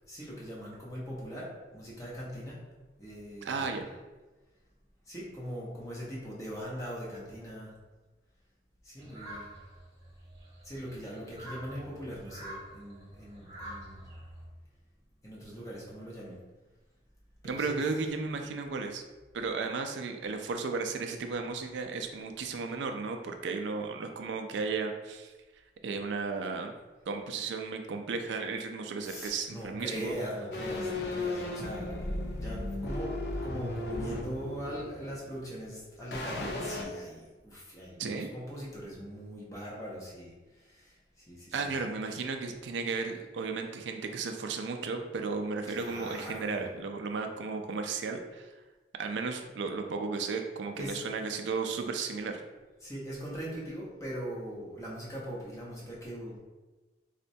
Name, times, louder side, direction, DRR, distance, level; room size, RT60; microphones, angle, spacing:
voice 1, 0.1-2.6 3.0-3.9 5.1-7.8 8.8-9.5 10.6-14.1 15.2-16.4 17.4-17.8 29.0-32.0 32.4-41.7 45.7-46.7 50.8-51.0 52.8-56.4, equal, 20° left, -6 dB, 0.7 m, -41 dB
voice 2, 3.4-3.8 17.4-19.0 19.3-25.3 25.8-26.7 27.1-30.1 38.0-38.3 41.5-48.5 49.0-52.4, right 4 dB, 85° right, 5 dB, 0.4 m, -34 dB
sound 1, 9.0-14.5, right 1 dB, 20° right, 1.0 m, -47 dB
sound 2, 30.5-35.7 36.1-36.8, left 2 dB, 65° left, 0.4 m, -35 dB
4.1 x 2.2 x 2.6 m, 1.2 s
head